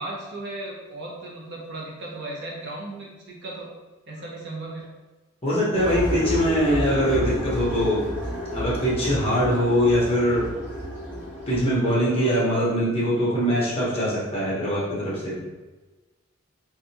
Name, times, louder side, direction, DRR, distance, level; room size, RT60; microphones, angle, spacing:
voice 1, 0.0-3.7 4.1-4.9, right 2 dB, 50° right, -3 dB, 0.8 m, -36 dB
voice 2, 5.4-8.0 8.5-10.5 11.5-15.5, equal, 25° left, -8 dB, 1.1 m, -22 dB
sound 1, 5.7-11.6, equal, 10° right, 1.3 m, -31 dB
3.5 x 3.3 x 2.9 m, 1.2 s
head